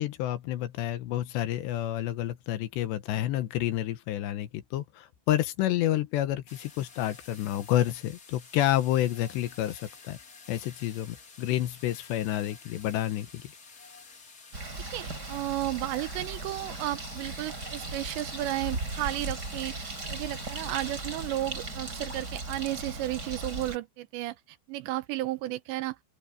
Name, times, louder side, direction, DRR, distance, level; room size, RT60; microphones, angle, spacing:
voice 1, 0.0-10.2 10.5-13.4, left 13 dB, 75° left, 3.1 m, -29 dB
sound 1, 6.5-21.9, left 4 dB, 40° left, 1.3 m, -51 dB
Bird, 14.5-23.8, right 2 dB, 20° right, 4.8 m, -37 dB
voice 2, 14.9-24.4 24.7-26.0, right 16 dB, 85° right, 2.8 m, -33 dB
open air
omnidirectional pair, 5.4 m